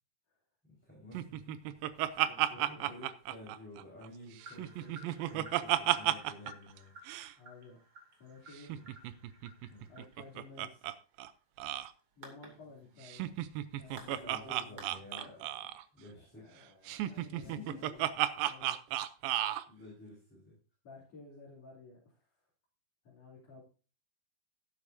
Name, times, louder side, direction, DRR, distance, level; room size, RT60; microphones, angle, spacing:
voice 1, 0.8-1.8 2.1-2.3 2.6-6.9 9.7-9.9 13.8-16.4 17.4-18.0 19.7-20.5, left 1 dB, 5° left, -5 dB, 4.0 m, -51 dB
Laughter, 1.1-4.1 4.4-6.5 6.8-6.9 7.1-7.3 8.6-10.9 11.2-11.3 11.6-11.9 13.0-15.8 16.9-19.6, right 14 dB, 80° right, 2.3 m, -33 dB
voice 2, 2.3-2.9 7.4-7.8 8.2-8.9 9.9-10.9 12.2-13.3 13.8-14.8 16.1-18.0 18.4-18.8 20.8-22.4 23.0-23.6, left 3 dB, 45° left, -5 dB, 4.0 m, -54 dB
sound 1, 4.4-15.9, right 2 dB, 40° right, 2.9 m, -55 dB
12.0 x 12.0 x 2.7 m, 0.36 s
omnidirectional pair, 4.5 m